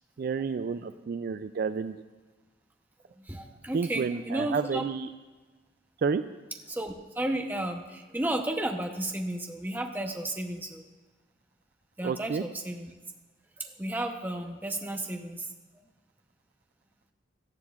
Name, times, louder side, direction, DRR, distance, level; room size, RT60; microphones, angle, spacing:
voice 1, 0.2-2.0 3.7-5.1 6.0-6.2 12.0-12.4, right 5 dB, 50° right, 11 dB, 0.3 m, -30 dB
voice 2, 3.1-4.8 6.7-10.8 12.0-12.9 13.6-15.5, right 1 dB, 10° right, 3 dB, 0.8 m, -33 dB
17.0 x 12.5 x 2.4 m, 1.3 s
head